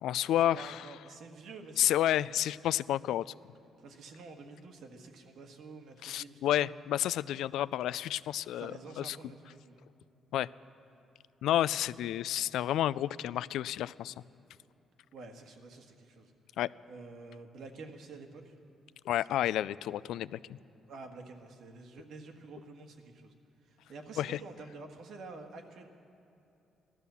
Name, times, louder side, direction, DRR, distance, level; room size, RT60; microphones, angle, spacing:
voice 1, 0.0-0.9 1.8-3.2 6.0-9.2 10.3-10.5 11.4-14.1 16.6-16.7 19.1-20.6 24.2-24.4, left 12 dB, 85° left, 19 dB, 0.3 m, -30 dB
voice 2, 0.5-2.0 3.8-6.7 8.5-9.8 15.1-16.3 16.9-18.5 19.0-19.2 20.9-23.3 23.6-25.9, right 3 dB, 75° right, 4 dB, 1.7 m, -49 dB
16.0 x 12.5 x 7.0 m, 2.9 s
cardioid pair, 90°, 0 cm